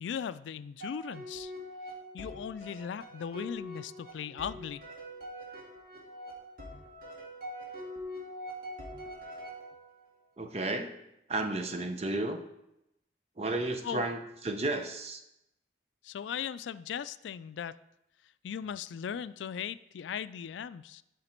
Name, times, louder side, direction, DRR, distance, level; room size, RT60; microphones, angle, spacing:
voice 1, 0.0-1.5 2.1-4.8 13.8-14.1 16.0-17.8 18.4-21.0, left 8 dB, 80° left, 15 dB, 0.3 m, -38 dB
sound 1, 0.8-10.1, equal, 50° right, 2.0 m, -44 dB
voice 2, 10.4-10.9 11.3-12.4 13.4-15.2, right 2 dB, 35° right, 7 dB, 0.7 m, -33 dB
12.0 x 5.1 x 4.4 m, 0.86 s
head